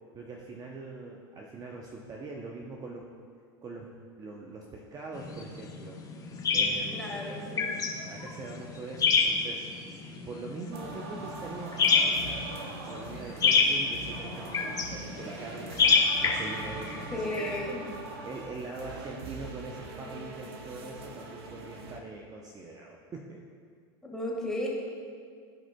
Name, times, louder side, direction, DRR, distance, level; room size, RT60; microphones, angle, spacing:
voice 1, 0.1-3.0 3.6-3.9 4.2-6.0 6.5-7.1 8.1-9.7 10.2-15.8 16.2-17.5 18.2-23.4, right 3 dB, 30° right, -1 dB, 0.7 m, -42 dB
sound 1, 5.1-17.6, left 5 dB, 30° left, 1.1 m, -29 dB
voice 2, 6.9-7.8 17.1-17.9 24.0-24.7, left 1 dB, 5° left, -4 dB, 1.9 m, -34 dB
sound 2, 10.7-22.0, right 3 dB, 80° right, 0.9 m, -42 dB
14.5 x 4.9 x 2.3 m, 2.1 s
hypercardioid pair, 100°, 13 cm